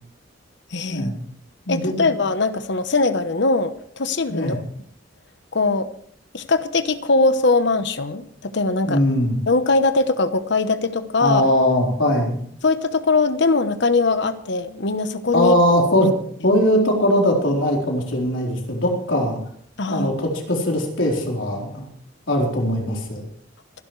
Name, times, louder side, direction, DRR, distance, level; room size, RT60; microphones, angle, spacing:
voice 1, 0.7-1.1 1.7-4.6 5.5-5.9 6.3-9.0 9.5-11.4 12.6-15.5 19.8-20.1, left 3 dB, 65° left, 11 dB, 1.0 m, -21 dB
voice 2, 1.7-2.1 4.3-4.6 8.8-9.4 11.2-12.4 15.3-16.1 16.4-19.4 19.9-21.9 22.3-23.2, left 1 dB, 85° left, 0 dB, 4.2 m, -20 dB
27.5 x 11.5 x 3.3 m, 0.62 s
head